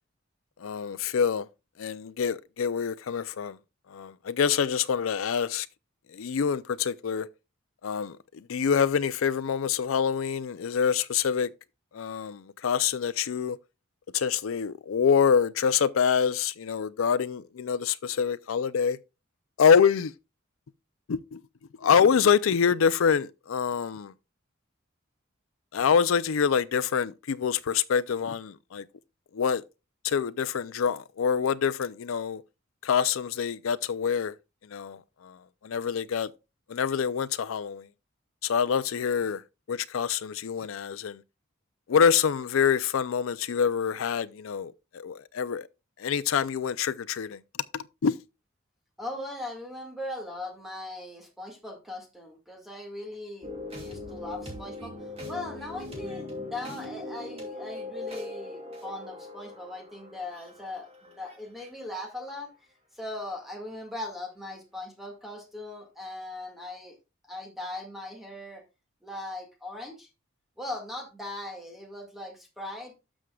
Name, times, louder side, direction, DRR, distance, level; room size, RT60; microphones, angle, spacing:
voice 1, 0.6-1.5 1.8-3.6 3.9-5.7 6.1-7.3 7.8-8.2 8.5-11.5 11.9-13.6 14.1-19.0 19.6-20.1 21.1-21.4 21.8-24.1 25.7-28.8 29.3-29.6 30.0-32.4 32.8-34.3 34.7-35.3 35.6-36.3 36.7-37.8 38.4-39.4 39.7-41.2 41.9-45.7 46.0-47.4 47.7-48.2, left 7 dB, 85° left, 0.4 m, -26 dB
voice 2, 49.0-62.5 62.9-67.0 67.3-68.6 69.0-70.1 70.6-72.9, left 2 dB, ahead, 1.9 m, -39 dB
sound 1, 53.4-61.7, left 2 dB, 30° right, 2.7 m, -40 dB
12.5 x 6.3 x 2.3 m
head